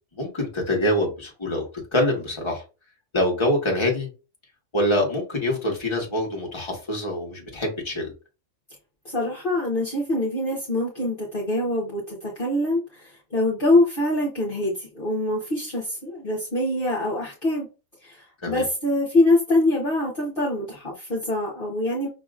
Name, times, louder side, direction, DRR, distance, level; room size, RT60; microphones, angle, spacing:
voice 1, 0.1-2.6 3.1-4.1 4.7-8.1 18.4-18.6, left 1 dB, 20° left, 0 dB, 1.4 m, -25 dB
voice 2, 9.0-17.7 18.0-22.1, left 1 dB, 45° left, -4 dB, 1.2 m, -24 dB
6.3 x 2.9 x 2.5 m, 0.31 s
omnidirectional pair, 1.4 m